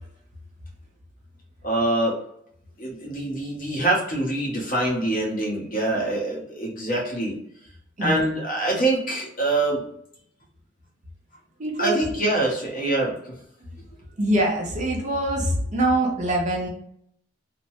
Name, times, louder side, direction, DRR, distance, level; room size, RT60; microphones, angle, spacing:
voice 1, 1.6-2.2 2.8-7.4 8.0-9.8 11.8-13.3, right 2 dB, 45° left, -3 dB, 1.1 m, -24 dB
voice 2, 11.6-12.0 14.2-16.7, right 1 dB, 40° right, -1 dB, 0.7 m, -24 dB
3.1 x 2.1 x 2.7 m, 0.72 s
head